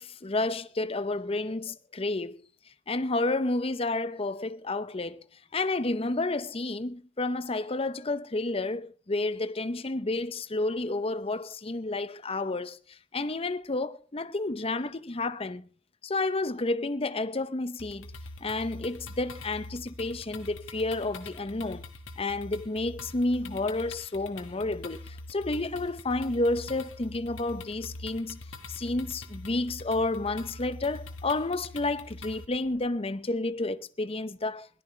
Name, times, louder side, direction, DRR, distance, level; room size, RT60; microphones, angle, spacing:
voice 1, 0.0-2.4 2.9-5.2 5.5-15.6 16.0-18.1 18.4-21.8 22.2-28.4 28.7-34.7, left 2 dB, 30° left, 0.7 m, -30 dB
sound 1, 17.8-32.4, left 2 dB, 85° left, 1.7 m, -44 dB
21.5 x 17.5 x 3.3 m
head